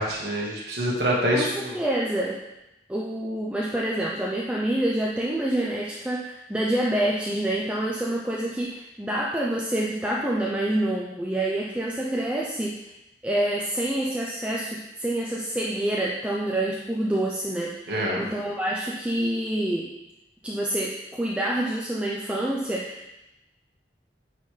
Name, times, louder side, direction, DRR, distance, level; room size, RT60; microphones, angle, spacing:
voice 1, 0.0-1.8 17.9-18.2, equal, 70° right, -4 dB, 1.4 m, -26 dB
voice 2, 1.3-2.4 2.9-12.8 13.2-19.9 20.4-23.1, right 1 dB, 5° right, -4 dB, 0.5 m, -27 dB
9.3 x 4.1 x 3.2 m, 0.94 s
head